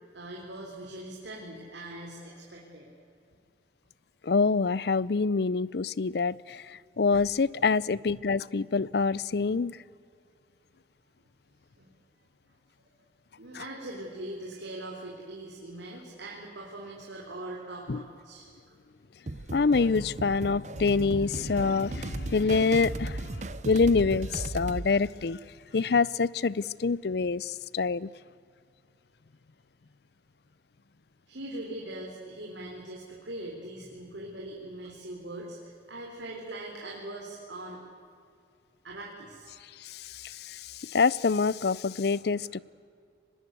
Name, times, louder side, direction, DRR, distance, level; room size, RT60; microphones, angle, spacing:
voice 1, 0.1-2.9 11.8-11.9 13.4-18.5 31.3-37.8 38.8-39.5 40.7-40.9, right 1 dB, 75° right, -2 dB, 3.9 m, -41 dB
voice 2, 4.2-9.8 17.9-18.0 19.5-25.4 25.7-28.1 39.8-42.6, left 4 dB, 60° left, 22 dB, 0.5 m, -26 dB
sound 1, 19.3-24.9, right 2 dB, 40° right, 0.7 m, -36 dB
24.5 x 20.5 x 8.2 m, 2.4 s
head